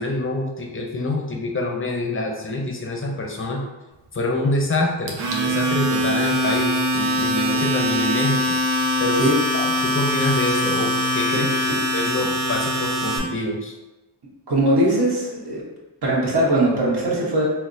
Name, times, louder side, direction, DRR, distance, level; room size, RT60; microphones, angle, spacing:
voice 1, 0.0-3.7 4.1-8.6 9.0-13.7, left 2 dB, 25° left, 0 dB, 0.7 m, -26 dB
Domestic sounds home sounds, 5.1-13.2, equal, 90° right, 0.7 m, -22 dB
voice 2, 11.3-11.8 14.5-15.6 16.0-17.5, right 1 dB, 55° right, -5 dB, 1.3 m, -21 dB
4.1 x 2.0 x 2.6 m, 1.1 s
cardioid pair, 55°, 47 cm